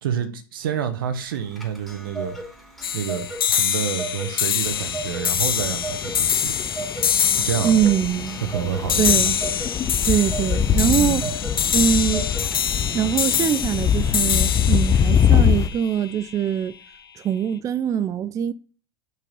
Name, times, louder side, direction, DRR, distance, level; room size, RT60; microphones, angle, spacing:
voice 1, 0.0-2.4 2.9-6.5 7.4-7.7 8.5-9.2 10.7-11.3, right 8 dB, 70° right, 1.0 m, -28 dB
Clock, 1.3-12.9, right 2 dB, ahead, 2.9 m, -36 dB
sound 1, 2.8-16.3, left 8 dB, 90° left, 0.5 m, -25 dB
sound 2, 4.7-15.7, left 8 dB, 30° left, 0.7 m, -24 dB
voice 2, 7.6-8.4 9.0-9.4 10.0-11.2 11.7-12.3 12.9-16.7 17.2-18.5, right 9 dB, 30° right, 0.4 m, -22 dB
5.9 x 4.6 x 5.5 m
hypercardioid pair, 95°, 12 cm